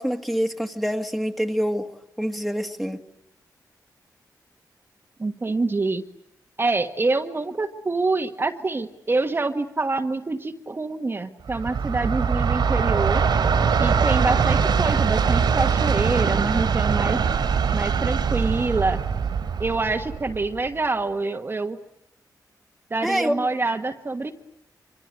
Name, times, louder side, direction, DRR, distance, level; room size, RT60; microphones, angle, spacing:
voice 1, 0.0-1.9 2.2-3.0 23.0-23.5, equal, ahead, 5 dB, 2.1 m, -26 dB
voice 2, 5.2-6.0 6.6-13.2 13.8-17.2 17.7-19.0 19.6-21.8 22.9-24.3, right 3 dB, 30° right, 5 dB, 1.5 m, -26 dB
Train, 11.5-20.7, right 6 dB, 85° right, 3.1 m, -22 dB
26.0 x 25.0 x 9.3 m, 0.80 s
wide cardioid pair, 110°, 7 cm